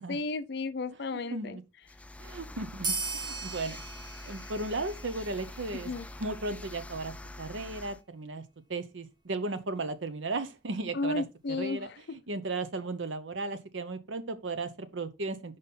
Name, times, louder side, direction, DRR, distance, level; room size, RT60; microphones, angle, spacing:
voice 1, 0.0-1.6 5.8-6.1 10.9-11.9, left 3 dB, 65° left, 0.6 m, -33 dB
voice 2, 1.3-1.6 2.2-3.8 4.2-5.9 6.2-8.4 8.7-15.6, right 3 dB, 85° right, 0.8 m, -35 dB
sound 1, 1.8-8.0, left 1 dB, 5° left, 0.3 m, -45 dB
sound 2, 2.8-5.9, right 4 dB, 25° right, 0.8 m, -38 dB
5.2 x 4.2 x 5.5 m
head